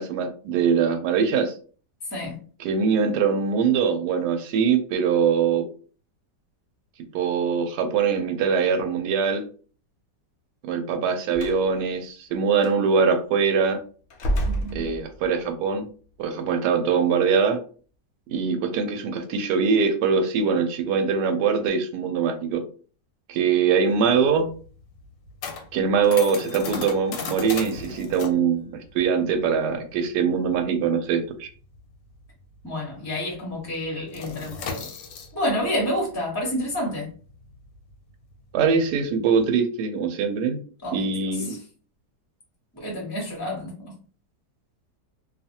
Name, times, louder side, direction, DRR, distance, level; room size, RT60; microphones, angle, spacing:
voice 1, 0.0-1.5 2.6-5.6 7.1-9.4 10.6-13.8 14.7-15.8 16.2-17.6 18.3-22.6 23.3-24.5 25.7-28.7 28.9-31.5 38.5-40.6 40.9-41.5, right 6 dB, 75° right, 1.1 m, -22 dB
voice 2, 2.1-2.4 14.5-14.8 32.6-34.9 35.3-37.1 40.8-41.0 42.7-43.7, left 1 dB, 15° left, 0.6 m, -29 dB
Slam, 11.3-11.6 12.6-12.8 14.1-15.4, right 1 dB, 70° left, 0.6 m, -28 dB
sound 1, 23.9-32.9 33.1-33.4 33.7-39.4, left 5 dB, 85° left, 1.3 m, -37 dB
2.6 x 2.4 x 2.7 m
omnidirectional pair, 1.9 m